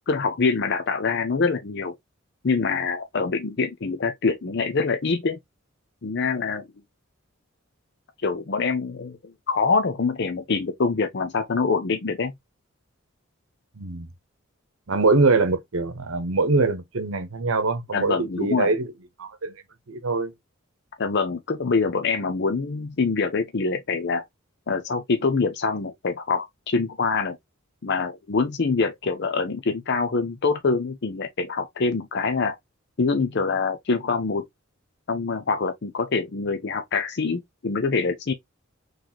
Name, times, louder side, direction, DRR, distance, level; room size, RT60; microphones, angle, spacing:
voice 1, 0.1-1.9 2.4-5.4 6.0-6.6 8.2-9.2 9.5-12.3 17.9-18.7 21.0-24.2 24.7-27.4 27.8-32.6 33.0-34.4 35.1-38.3, left 4 dB, 55° left, 0.6 m, -25 dB
voice 2, 13.8-14.1 14.9-18.9 19.2-19.6 19.9-20.3, right 3 dB, 85° right, 0.9 m, -23 dB
4.0 x 3.2 x 2.8 m
head